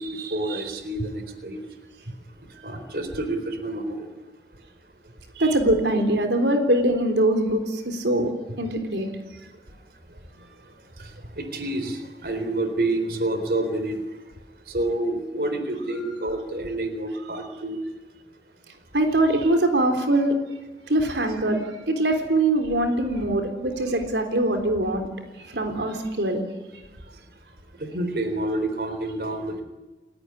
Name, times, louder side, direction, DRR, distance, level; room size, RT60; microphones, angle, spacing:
voice 1, 0.0-1.6 2.6-4.1 5.4-5.6 11.0-11.1 11.4-14.0 14.7-17.8 27.8-29.6, right 2 dB, 60° right, 8 dB, 3.9 m, -28 dB
voice 2, 5.4-9.1 18.9-20.4 20.9-25.1 25.5-26.4, right 1 dB, 85° right, 5 dB, 3.6 m, -22 dB
29.5 x 17.0 x 10.0 m, 1.2 s
head